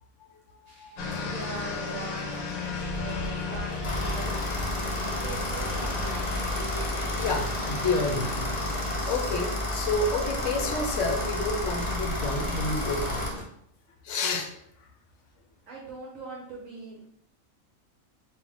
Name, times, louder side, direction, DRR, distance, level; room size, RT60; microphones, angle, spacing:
voice 1, 0.6-1.3 7.2-8.8 9.0-13.2 14.0-14.5, left 3 dB, 70° left, 5 dB, 0.9 m, -30 dB
sound 1, 0.7-13.4, equal, 35° right, 0.8 m, -47 dB
sound 2, 1.0-9.0, left 3 dB, 85° left, 1.1 m, -35 dB
voice 2, 1.1-4.2 4.9-6.4 15.7-17.1, right 2 dB, 75° right, -3 dB, 1.2 m, -41 dB
sound 3, 3.8-13.3, left 1 dB, 45° left, 0.4 m, -31 dB
4.1 x 2.3 x 3.5 m, 0.70 s
omnidirectional pair, 1.4 m